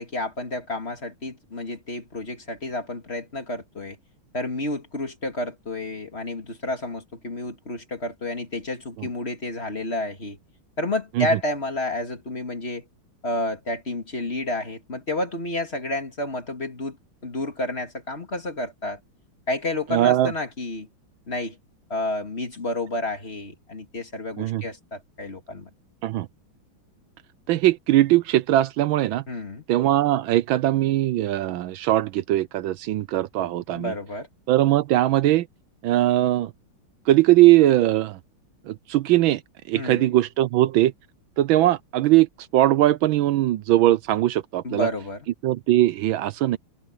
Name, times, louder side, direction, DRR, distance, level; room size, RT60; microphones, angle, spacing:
voice 1, 0.0-4.0 4.3-10.4 10.8-12.9 13.2-17.0 17.2-19.0 19.5-20.9 21.3-21.6 21.9-25.7 29.3-29.6 33.7-34.3 39.7-40.1 44.6-45.3, left 1 dB, 30° left, 2.5 m, -30 dB
voice 2, 19.9-20.3 24.4-24.6 26.0-26.3 27.5-29.2 29.7-33.9 34.5-35.5 35.8-36.5 37.1-38.2 38.7-39.4 39.7-40.9 41.4-42.3 42.5-44.9 45.4-46.6, right 14 dB, 75° right, 1.4 m, -20 dB
omnidirectional pair, 2.3 m